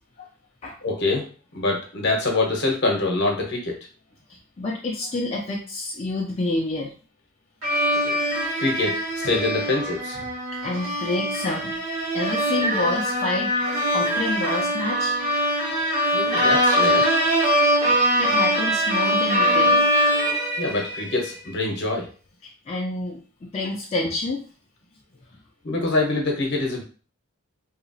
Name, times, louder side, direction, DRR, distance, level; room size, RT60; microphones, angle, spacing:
voice 1, 0.8-3.8 8.0-8.2 8.6-10.2 16.1-17.1 20.6-22.1 25.6-26.8, left 2 dB, 55° left, 1 dB, 0.8 m, -25 dB
voice 2, 4.3-6.9 9.3-9.4 10.2-10.3 10.6-11.8 12.1-13.5 13.9-15.2 17.9-19.8 22.4-24.4, left 2 dB, 30° left, -3 dB, 0.4 m, -28 dB
sound 1, 7.6-21.3, equal, 85° right, 1.3 m, -22 dB
2.8 x 2.4 x 2.6 m, 0.38 s
head